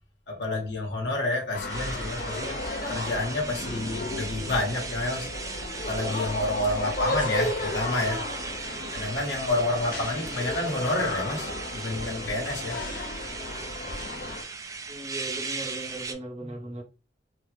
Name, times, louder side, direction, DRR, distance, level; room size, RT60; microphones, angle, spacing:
voice 1, 0.3-2.6 2.9-5.3 5.9-8.2 8.9-12.8 16.4-16.6, left 2 dB, 75° left, 1.1 m, -29 dB
sound 1, 1.5-14.4, left 2 dB, 50° left, 0.6 m, -34 dB
sound 2, 1.7-16.1, right 4 dB, 20° right, 0.3 m, -38 dB
voice 2, 14.9-16.8, right 1 dB, 40° right, 0.8 m, -38 dB
3.4 x 2.0 x 3.2 m
head